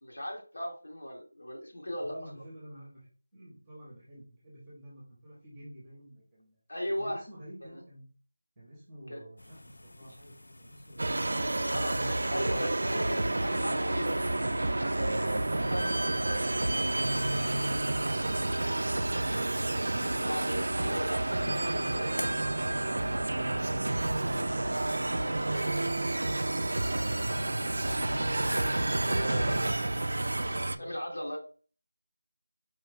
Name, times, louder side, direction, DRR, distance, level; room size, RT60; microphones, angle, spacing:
voice 1, 0.0-2.2 6.7-7.2 9.1-9.2 11.6-14.3 14.9-15.8 16.2-16.4 20.1-21.2 21.7-22.0 25.5-26.0 28.9-29.6 30.6-31.4, equal, 65° left, 0 dB, 1.7 m, -37 dB
voice 2, 2.0-6.6 7.0-8.0 8.6-11.7 26.6-31.2, equal, 5° right, -7 dB, 1.1 m, -50 dB
sound 1, 9.4-28.2, left 1 dB, 85° left, 0.3 m, -47 dB
sound 2, 11.0-20.1, left 1 dB, 30° left, 0.7 m, -53 dB
sound 3, 11.0-30.8, right 2 dB, 55° right, 0.3 m, -30 dB
4.8 x 2.7 x 3.4 m, 0.39 s
figure-of-eight pair, 180°, 0 cm